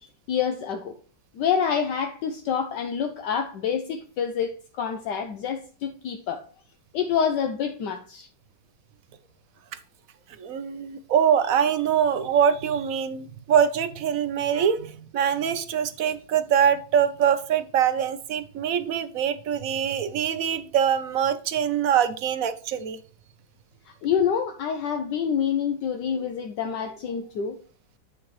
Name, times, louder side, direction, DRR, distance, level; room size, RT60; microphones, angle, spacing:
voice 1, 0.3-0.9 1.3-4.5 4.8-6.4 6.9-8.3 24.0-27.6, left 7 dB, 75° left, 1.3 m, -27 dB
voice 2, 10.4-23.0, right 8 dB, 60° right, 1.0 m, -24 dB
8.7 x 6.5 x 3.1 m
omnidirectional pair, 2.0 m